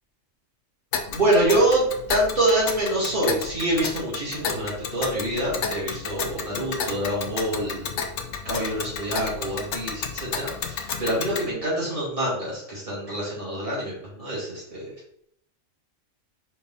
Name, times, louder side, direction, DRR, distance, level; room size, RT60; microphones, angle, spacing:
Tick, 0.9-11.5, left 6 dB, 65° left, 1.0 m, -32 dB
voice 1, 1.1-7.9 8.4-14.8, right 1 dB, 25° right, -7 dB, 2.7 m, -26 dB
5.3 x 4.3 x 4.2 m, 0.69 s
omnidirectional pair, 1.4 m